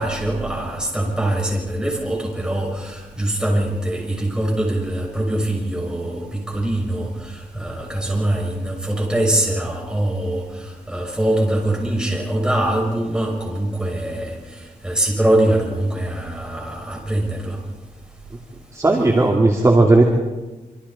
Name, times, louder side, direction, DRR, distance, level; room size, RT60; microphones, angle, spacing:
voice 1, 0.0-7.1 7.5-10.4 10.9-14.4 14.8-17.6, right 1 dB, 5° right, -1 dB, 6.5 m, -22 dB
voice 2, 18.7-20.0, right 2 dB, 20° right, 0 dB, 2.6 m, -15 dB
26.5 x 26.0 x 4.3 m, 1.2 s
wide cardioid pair, 115°, 14 cm